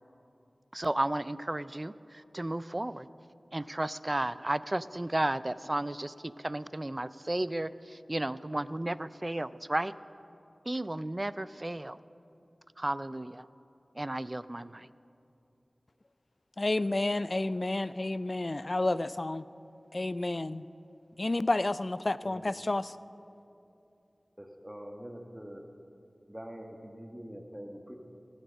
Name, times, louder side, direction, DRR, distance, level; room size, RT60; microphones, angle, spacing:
voice 1, 0.7-3.1 3.5-9.9 10.7-12.0 12.8-13.5 14.0-14.9, right 1 dB, 30° right, 16 dB, 0.4 m, -33 dB
voice 2, 16.6-19.4 19.9-20.6 21.2-22.9, left 2 dB, 50° left, 15 dB, 0.4 m, -30 dB
voice 3, 24.4-25.6 26.3-28.0, equal, 15° right, 2 dB, 1.4 m, -44 dB
16.5 x 9.2 x 6.4 m, 2.8 s
wide cardioid pair, 45°, 0 cm